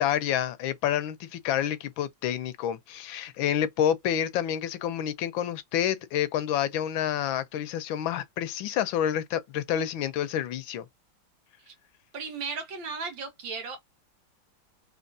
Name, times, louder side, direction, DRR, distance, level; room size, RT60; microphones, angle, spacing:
voice 1, 0.0-10.8, left 10 dB, 90° left, 1.5 m, -28 dB
voice 2, 12.1-13.8, right 5 dB, 75° right, 2.0 m, -35 dB
4.3 x 2.9 x 2.6 m
omnidirectional pair, 2.1 m